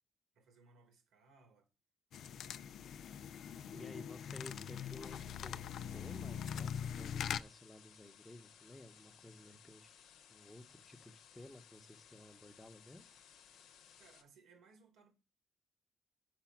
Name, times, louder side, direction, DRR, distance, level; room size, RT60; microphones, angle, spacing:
voice 1, 0.3-1.7 3.5-4.1 4.4-5.0 14.0-15.1, right 4 dB, 80° right, 2.1 m, -66 dB
sound 1, 2.1-7.4, left 8 dB, 70° left, 0.3 m, -42 dB
voice 2, 3.7-5.6 5.9-10.0 10.3-13.2, left 1 dB, 10° left, 0.8 m, -55 dB
sound 2, 5.0-14.2, left 8 dB, 90° left, 0.8 m, -61 dB
6.0 x 4.8 x 6.0 m
cardioid pair, 90°, 0 cm